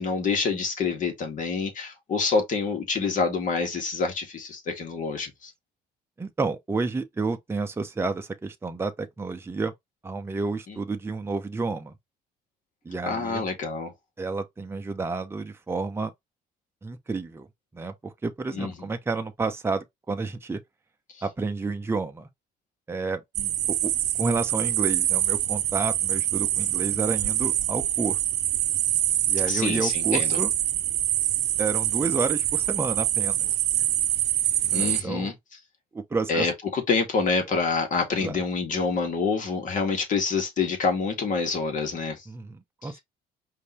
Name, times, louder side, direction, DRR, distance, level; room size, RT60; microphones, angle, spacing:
voice 1, 0.0-5.5 10.7-10.8 13.0-13.9 18.5-18.7 23.4-23.5 29.5-30.4 34.7-35.3 36.3-42.2 42.8-42.9, left 4 dB, 50° left, 1.8 m, -27 dB
voice 2, 6.2-9.7 10.0-11.9 12.8-13.4 14.2-16.1 16.8-17.5 17.7-20.6 21.2-22.3 22.9-23.2 23.8-23.9 24.2-28.2 29.3-30.5 31.6-33.5 34.6-35.3 35.9-36.5 38.2-38.4 42.3-43.0, right 3 dB, 15° right, 0.7 m, -30 dB
sound 1, 23.3-35.0, right 13 dB, 80° right, 0.8 m, -25 dB
5.3 x 2.8 x 3.1 m
cardioid pair, 110°, 17 cm